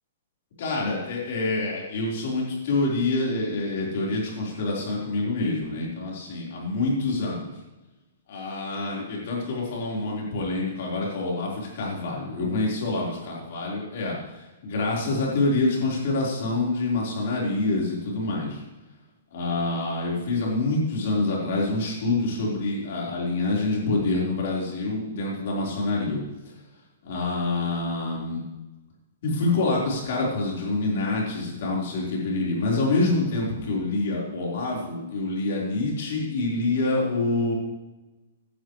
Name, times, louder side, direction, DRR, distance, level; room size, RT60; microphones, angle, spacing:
voice 1, 0.6-7.5 8.3-18.6 19.3-26.2 27.0-28.4 29.2-37.6, left 2 dB, 45° left, -3 dB, 4.4 m, -26 dB
15.0 x 12.0 x 3.3 m, 1.1 s
hypercardioid pair, 180°, 0 cm